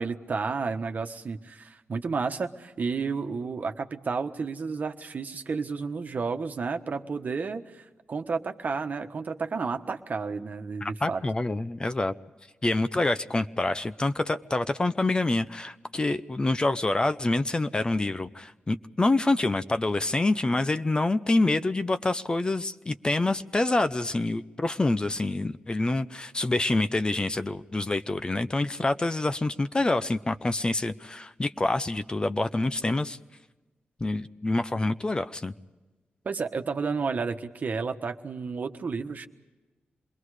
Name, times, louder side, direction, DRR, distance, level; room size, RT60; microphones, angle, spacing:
voice 1, 0.0-11.2 36.2-39.3, right 4 dB, 55° right, 6 dB, 1.3 m, -31 dB
voice 2, 10.8-12.1 12.6-33.2 34.0-35.5, left 2 dB, 25° left, 11 dB, 0.7 m, -26 dB
27.0 x 21.5 x 4.9 m, 1.2 s
cardioid pair, 80°, 3 cm